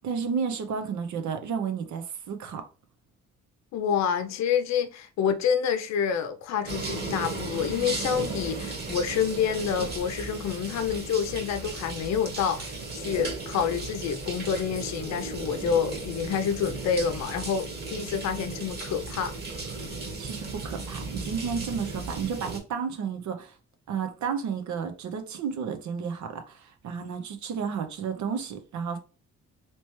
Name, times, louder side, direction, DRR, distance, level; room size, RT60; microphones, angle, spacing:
voice 1, 0.0-2.7 20.2-23.5 23.9-29.0, right 6 dB, 70° right, 0.7 m, -32 dB
voice 2, 3.7-19.3, left 7 dB, 60° left, 0.6 m, -28 dB
sound 1, 6.7-22.6, right 3 dB, 35° right, 1.3 m, -35 dB
3.2 x 3.0 x 3.1 m
cardioid pair, 90°, 30 cm